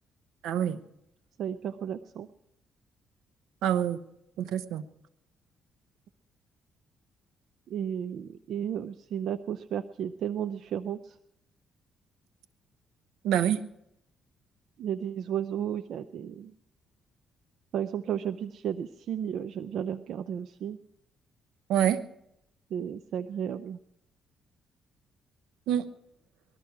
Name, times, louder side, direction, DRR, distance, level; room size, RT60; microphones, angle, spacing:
voice 1, 0.4-0.8 3.6-4.0 4.4-4.8 13.2-13.6 21.7-22.0 25.7-25.9, right 10 dB, 90° right, 12 dB, 0.9 m, -26 dB
voice 2, 1.4-2.3 7.7-11.2 14.8-16.5 17.7-20.8 22.7-23.8, right 9 dB, 70° right, 11 dB, 0.5 m, -33 dB
19.5 x 13.0 x 4.7 m, 0.80 s
cardioid pair, 90°, 0 cm